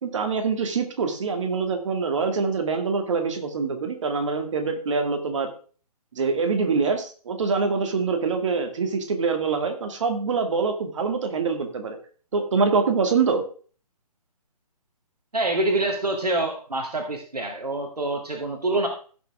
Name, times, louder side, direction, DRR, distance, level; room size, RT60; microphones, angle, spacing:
voice 1, 0.0-5.5 6.1-12.0 12.3-13.5, right 5 dB, 50° right, 5 dB, 2.4 m, -25 dB
voice 2, 15.3-18.9, right 2 dB, 80° right, 3 dB, 2.1 m, -26 dB
15.5 x 6.9 x 3.6 m, 0.41 s
figure-of-eight pair, 140°, 20 cm